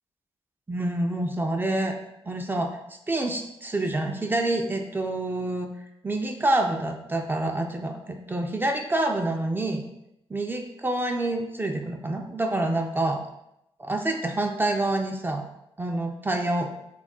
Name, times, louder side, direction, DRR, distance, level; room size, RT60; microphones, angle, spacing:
voice 1, 0.7-1.9 2.3-2.7 3.1-5.7 6.0-9.8 10.3-13.2 13.8-15.5 15.8-16.7, right 2 dB, 20° right, 3 dB, 0.3 m, -27 dB
2.3 x 2.1 x 3.6 m, 0.83 s
cardioid pair, 60°, 11 cm